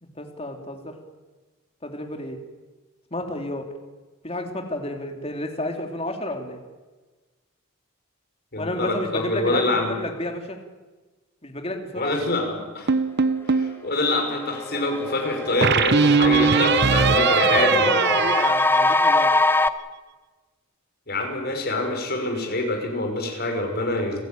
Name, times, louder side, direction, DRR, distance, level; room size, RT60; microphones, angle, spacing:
voice 1, 0.0-0.9 1.8-2.4 3.1-3.7 4.2-6.6 8.6-10.6 11.4-12.2 17.2-19.3, left 1 dB, 25° left, 3 dB, 3.0 m, -31 dB
voice 2, 8.5-10.0 11.9-12.9 13.5-17.9 21.1-24.2, left 2 dB, 45° left, 3 dB, 5.7 m, -26 dB
sound 1, 12.9-13.8 15.6-19.4, right 5 dB, 50° right, 0.9 m, -20 dB
sound 2, 13.9-14.0 14.3-19.7, left 2 dB, 10° left, 0.7 m, -23 dB
30.0 x 15.5 x 9.2 m, 1.3 s
head